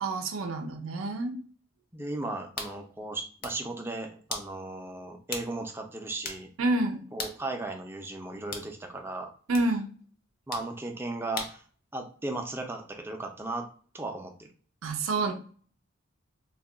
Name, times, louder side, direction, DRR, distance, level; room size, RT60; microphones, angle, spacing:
voice 1, 0.0-1.4 6.6-7.0 9.5-9.9 14.8-15.3, right 2 dB, 80° right, 4 dB, 0.5 m, -28 dB
voice 2, 1.9-6.5 7.1-9.3 10.5-11.6 11.9-13.7 13.9-14.5, right 2 dB, 10° right, 3 dB, 0.4 m, -36 dB
sound 1, 2.6-2.8 3.2-3.6 4.3-4.5 5.3-5.5 5.8-5.9 6.2-6.5 7.2-7.4 8.5-8.7 9.5-9.7 10.5-10.7 11.4-11.6, left 4 dB, 45° left, 0.6 m, -37 dB
2.3 x 2.2 x 3.7 m, 0.43 s
head